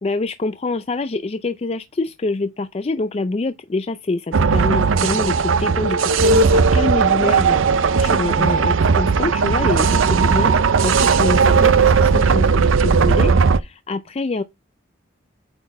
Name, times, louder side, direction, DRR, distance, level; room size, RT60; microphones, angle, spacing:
voice 1, 0.0-14.4, left 3 dB, 30° left, 0.4 m, -26 dB
sound 1, 4.3-13.6, right 5 dB, 80° right, 0.5 m, -16 dB
8.8 x 4.0 x 4.1 m
head